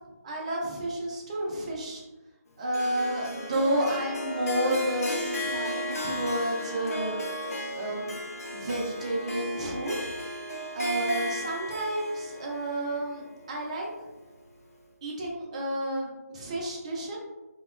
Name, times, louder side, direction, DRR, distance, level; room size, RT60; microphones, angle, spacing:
voice 1, 0.2-2.0 2.6-7.2 7.7-8.2 8.5-10.1 10.7-13.9 15.0-17.2, right 1 dB, 25° right, -1 dB, 0.4 m, -30 dB
Harp, 2.7-14.0, left 1 dB, 65° left, 0.5 m, -35 dB
2.8 x 2.1 x 2.3 m, 1.1 s
figure-of-eight pair, 160°, 9 cm